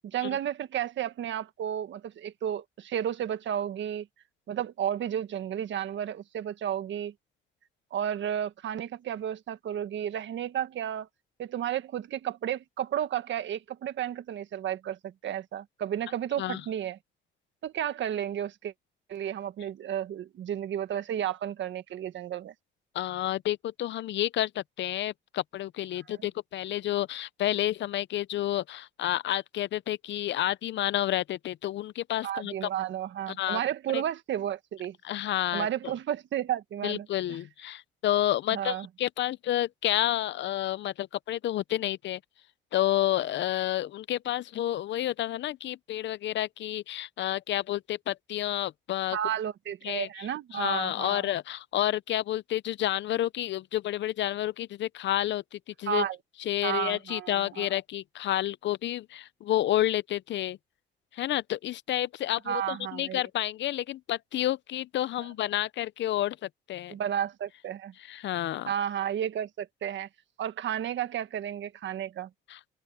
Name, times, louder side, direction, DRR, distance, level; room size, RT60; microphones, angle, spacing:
voice 1, 0.0-4.1 4.5-7.1 7.9-11.1 11.4-17.0 17.6-18.7 19.1-22.5 26.2-26.3 32.2-34.9 35.5-37.4 38.5-38.9 49.1-51.3 55.9-56.2 56.6-57.7 62.4-63.2 66.9-67.9 68.6-70.1 70.4-72.3, right 10 dB, 70° right, 1.6 m, -32 dB
voice 2, 22.9-32.7 33.4-33.6 33.9-34.0 35.0-35.9 36.8-42.2 42.7-49.2 49.8-50.3 50.5-56.0 56.5-60.6 61.1-66.9 68.0-68.7 72.5-72.6, left 13 dB, 65° left, 0.6 m, -30 dB
open air
cardioid pair, 90°, 20 cm